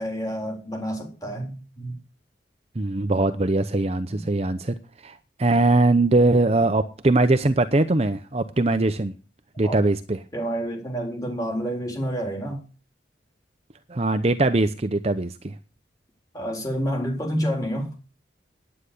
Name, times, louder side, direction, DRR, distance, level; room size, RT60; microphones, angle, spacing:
voice 1, 0.0-1.9 4.1-4.2 9.6-9.8 10.3-12.6 16.3-17.9, equal, 20° left, 3.7 m, -29 dB
voice 2, 2.8-4.7 5.0-9.1 9.6-10.2 13.9-15.5, right 2 dB, 35° right, 0.7 m, -21 dB
9.8 x 9.8 x 6.6 m
head